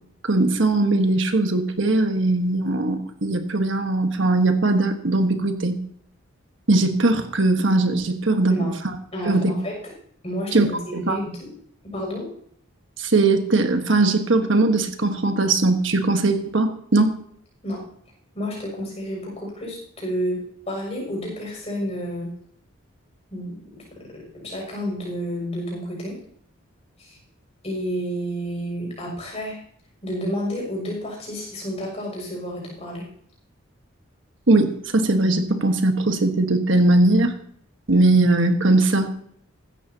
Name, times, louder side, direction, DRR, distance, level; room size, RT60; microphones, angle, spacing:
voice 1, 0.2-5.8 6.7-8.6 9.2-9.5 10.5-11.2 13.0-17.1 34.5-37.3 37.9-39.1, right 2 dB, 65° right, 6 dB, 1.4 m, -20 dB
voice 2, 9.1-9.8 10.2-11.5 11.9-12.3 17.6-17.8 18.3-22.3 23.3-26.2 27.0-27.2 27.6-29.6 30.0-33.1, equal, 30° left, -2 dB, 6.8 m, -30 dB
16.0 x 13.0 x 2.9 m, 0.64 s
head